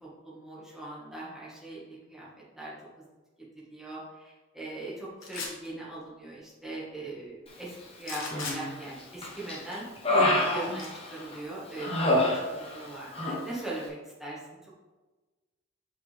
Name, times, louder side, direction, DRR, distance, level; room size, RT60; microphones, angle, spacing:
voice 1, 0.0-2.3 2.5-2.7 3.7-7.7 8.0-8.2 8.5-9.8 10.3-11.9 12.2-14.6, right 2 dB, ahead, -7 dB, 1.7 m, -40 dB
sound 1, 5.2-5.7 8.0-8.6 10.8-10.9, left 4 dB, 85° left, 1.4 m, -36 dB
Human voice, 8.2-8.8 9.2-11.4 11.8-12.9 13.1-13.4, left 1 dB, 30° left, 1.1 m, -27 dB
6.0 x 5.7 x 3.5 m, 1.2 s
head